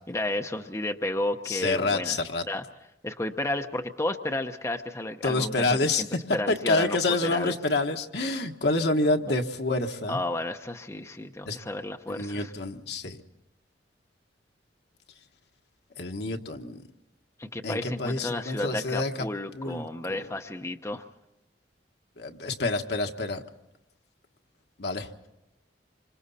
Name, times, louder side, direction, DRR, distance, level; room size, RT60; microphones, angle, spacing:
voice 1, 0.1-2.2 2.5-2.6 3.0-6.1 6.3-7.5 10.1-12.5 17.4-21.0, left 1 dB, 15° left, 5 dB, 0.8 m, -32 dB
voice 2, 1.5-2.4 5.2-6.2 6.5-10.2 11.5-11.6 12.1-13.2 16.0-16.8 17.6-19.3 19.5-20.3 22.2-23.4 24.8-25.3, left 2 dB, 65° left, 4 dB, 1.5 m, -28 dB
27.5 x 25.5 x 4.2 m, 0.93 s
head